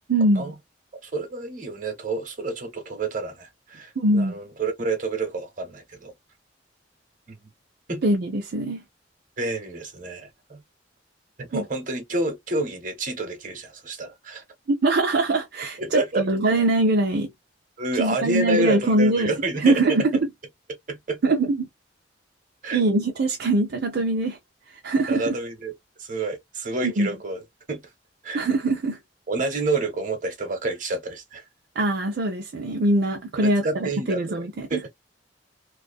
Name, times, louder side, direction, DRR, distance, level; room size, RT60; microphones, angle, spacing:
voice 1, 0.1-0.5 4.0-4.4 8.0-8.8 11.5-11.6 14.7-17.3 18.0-19.3 19.6-20.3 21.2-21.7 22.7-24.4 24.8-25.3 26.8-27.1 28.3-29.0 31.8-34.8, right 2 dB, 60° right, 0.5 m, -22 dB
voice 2, 1.0-6.1 7.3-7.4 7.9-8.0 9.4-10.6 11.4-14.4 15.8-16.3 17.8-20.2 20.9-21.2 22.6-22.8 25.1-25.7 26.0-27.8 28.2-28.4 29.3-31.4 33.4-34.9, right 2 dB, 45° right, 1.0 m, -29 dB
2.6 x 2.4 x 2.2 m
head